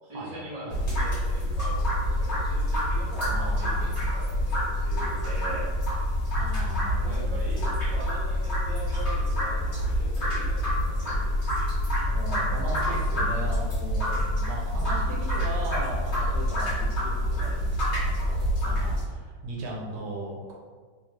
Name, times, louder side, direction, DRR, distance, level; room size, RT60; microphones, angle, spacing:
voice 1, 0.1-5.7 7.0-11.5, equal, 25° right, -7 dB, 0.6 m, -41 dB
sound 1, 0.7-19.0, equal, 40° left, 1.4 m, -27 dB
voice 2, 3.2-4.0 6.3-7.7 12.0-20.5, right 2 dB, 75° right, -2 dB, 1.2 m, -37 dB
Brass instrument, 8.9-13.1, left 3 dB, 75° left, 1.4 m, -52 dB
3.3 x 2.3 x 3.1 m, 1.5 s
omnidirectional pair, 2.0 m